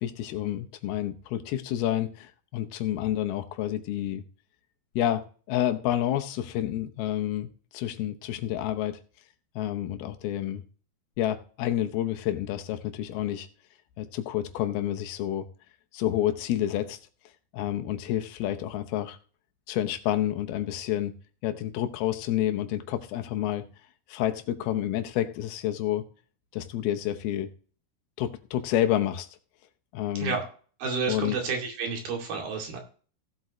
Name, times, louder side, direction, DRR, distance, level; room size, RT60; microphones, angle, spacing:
voice 1, 0.0-4.2 5.0-9.0 9.6-10.6 11.2-13.5 14.0-15.5 15.9-17.0 17.5-19.2 19.7-21.1 21.4-23.7 24.1-26.1 26.5-27.5 28.2-29.3 29.9-30.4 31.1-31.4, left 12 dB, 80° left, 2.8 m, -29 dB
voice 2, 30.8-32.8, right 5 dB, 70° right, 4.3 m, -30 dB
16.0 x 8.0 x 3.1 m
omnidirectional pair, 4.4 m